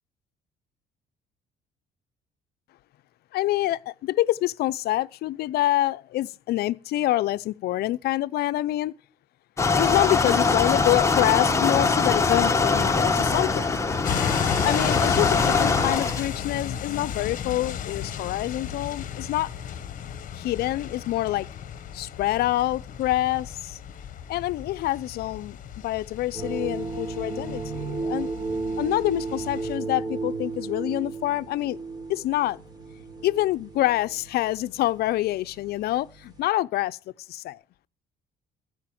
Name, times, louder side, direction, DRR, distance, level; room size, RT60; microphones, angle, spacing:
voice 1, 3.3-8.9 9.7-13.7 14.6-19.5 20.3-21.5 21.9-23.8 24.3-25.6 25.8-28.3 28.8-31.8 32.1-32.6 33.2-37.0 37.3-37.6, left 15 dB, 70° left, 0.6 m, -26 dB
sound 1, 9.6-16.3, left 4 dB, 15° left, 1.4 m, -22 dB
sound 2, 14.0-29.8, left 9 dB, 50° left, 1.1 m, -34 dB
sound 3, 26.3-36.4, right 3 dB, 25° right, 4.2 m, -34 dB
15.0 x 5.2 x 9.0 m
cardioid pair, 110°, 17 cm